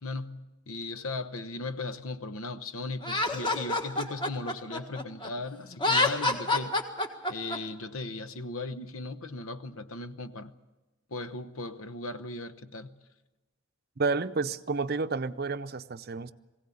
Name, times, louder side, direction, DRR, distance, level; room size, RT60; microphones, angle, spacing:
voice 1, 0.0-6.8 7.3-10.5 11.1-13.0, left 2 dB, 80° left, 1.0 m, -37 dB
Laughter, 3.0-5.3 5.7-7.6, left 2 dB, 20° left, 1.6 m, -27 dB
voice 2, 14.0-16.3, right 4 dB, 45° right, 0.6 m, -30 dB
21.5 x 17.0 x 8.5 m
head